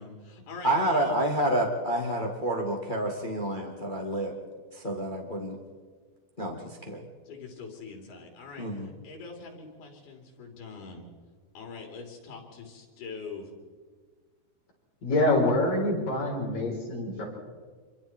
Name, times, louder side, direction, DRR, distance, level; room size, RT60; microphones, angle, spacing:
voice 1, 0.0-1.2 7.3-11.1 11.6-13.4, left 4 dB, 85° left, 2 dB, 5.3 m, -43 dB
voice 2, 0.6-4.3 4.7-5.6 6.4-7.0 8.6-8.9, right 1 dB, 20° left, 1 dB, 1.3 m, -29 dB
voice 3, 15.0-17.3, left 2 dB, 60° left, -2 dB, 6.4 m, -25 dB
26.5 x 23.5 x 4.5 m, 1.5 s
omnidirectional pair, 4.5 m